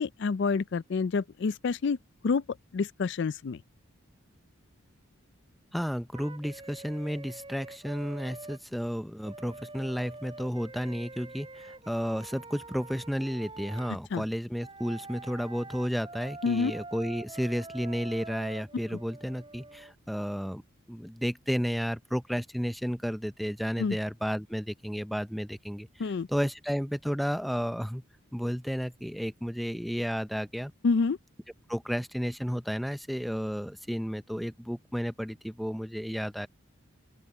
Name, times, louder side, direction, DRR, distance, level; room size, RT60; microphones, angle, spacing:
voice 1, 0.0-2.0 2.2-2.4 2.7-3.6 14.1-14.2 16.4-16.7 18.9-19.0 23.8-24.0 26.0-26.3 30.8-31.2, left 4 dB, 55° left, 0.4 m, -27 dB
voice 2, 5.7-20.6 20.9-28.0 28.3-30.7 31.7-36.5, equal, ahead, 0.5 m, -32 dB
Wind instrument woodwind instrument, 6.1-8.6 9.2-13.9 14.6-19.9, right 2 dB, 25° right, 7.9 m, -45 dB
open air
head